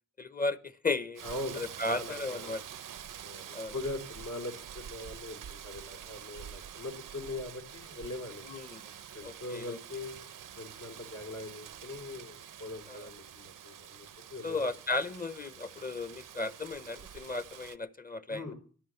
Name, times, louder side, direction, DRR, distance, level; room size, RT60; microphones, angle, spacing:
voice 1, 0.2-1.2 1.5-2.6 3.5-3.7 8.4-8.9 9.2-9.8 12.9-13.1 14.4-18.5, left 3 dB, 25° left, 0.9 m, -35 dB
voice 2, 1.2-2.6 3.2-8.5 9.1-10.2 10.6-14.7 18.3-18.5, left 2 dB, 75° left, 3.9 m, -41 dB
Rain, 1.2-17.8, right 9 dB, 85° right, 0.7 m, -47 dB
13.0 x 11.0 x 7.8 m
wide cardioid pair, 80°, 31 cm